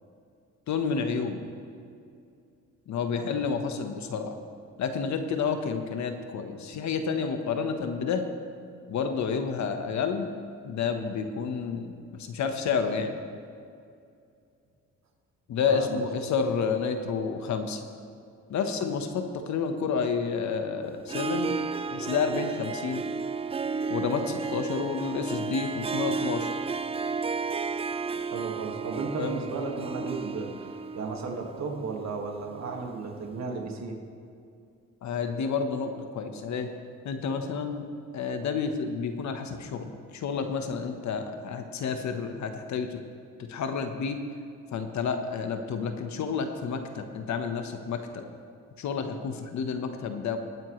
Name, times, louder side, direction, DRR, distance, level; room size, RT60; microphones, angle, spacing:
voice 1, 0.7-1.5 2.9-4.3 4.8-8.2 8.9-10.3 10.6-11.9 12.2-13.2 15.5-17.8 18.5-21.6 21.9-23.0 23.9-26.5 29.2-29.3 35.0-36.7 37.0-37.8 38.1-43.0 43.5-44.2 44.7-48.2 48.8-50.4, left 5 dB, 65° left, 6 dB, 1.2 m, -30 dB
voice 2, 15.7-16.0 28.2-33.9, right 4 dB, 60° right, 2 dB, 1.9 m, -34 dB
Harp, 21.0-32.9, right 5 dB, 20° right, 0.4 m, -33 dB
19.5 x 9.1 x 3.2 m, 2.4 s
cardioid pair, 90°, 30 cm